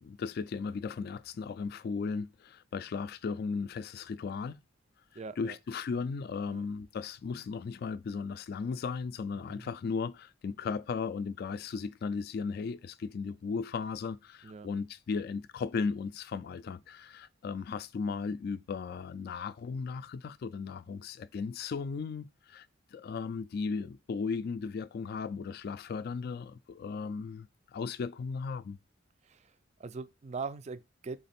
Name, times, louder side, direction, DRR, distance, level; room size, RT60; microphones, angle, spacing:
voice 1, 0.0-4.6 5.4-22.7 22.9-27.5 27.7-28.8, left 5 dB, 50° left, 0.3 m, -36 dB
voice 2, 5.1-5.6 6.5-6.6 9.5-9.7 14.4-14.7 29.2-29.5 29.8-31.2, right 4 dB, 35° right, 0.4 m, -41 dB
3.7 x 3.3 x 4.2 m
head